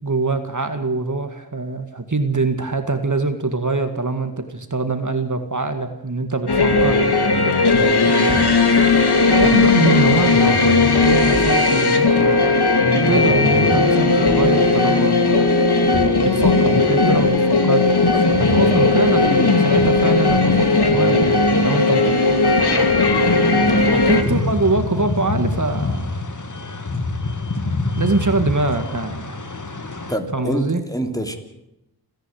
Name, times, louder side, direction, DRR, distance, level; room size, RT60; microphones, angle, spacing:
voice 1, 0.0-7.1 8.1-17.9 18.4-21.2 21.6-23.0 23.9-26.1 28.0-29.3 30.3-30.8, right 3 dB, 50° right, 7 dB, 2.0 m, -24 dB
sound 1, 6.5-24.2, left 3 dB, 90° left, 2.6 m, -16 dB
voice 2, 23.6-24.1 30.1-31.4, right 1 dB, 10° left, 5 dB, 3.1 m, -26 dB
sound 2, 24.1-30.2, left 3 dB, 50° left, 2.3 m, -26 dB
30.0 x 10.5 x 9.5 m, 0.87 s
wide cardioid pair, 60°, 38 cm